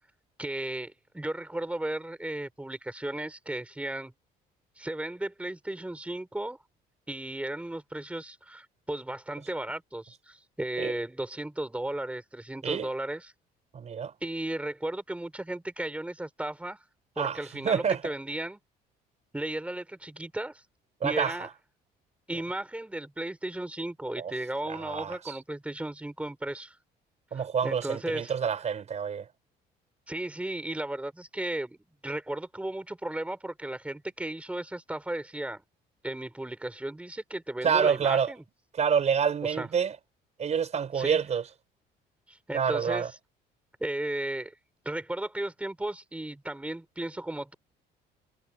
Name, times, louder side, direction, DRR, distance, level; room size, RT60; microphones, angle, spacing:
voice 1, 0.4-4.1 4.8-6.6 7.1-13.3 14.2-16.8 17.2-18.6 19.3-20.6 21.0-21.5 22.3-26.8 27.3-28.3 30.1-35.6 36.0-38.4 39.4-39.7 41.0-41.2 42.3-43.1 43.8-44.5 44.8-47.5, right 1 dB, 5° right, 4.2 m, -35 dB
voice 2, 13.7-14.1 17.2-18.0 21.0-21.3 24.2-24.3 24.7-25.4 27.3-29.2 37.6-38.3 38.7-39.9 40.4-41.4 42.5-43.1, right 7 dB, 40° right, 5.2 m, -27 dB
cardioid pair, 110°, 17 cm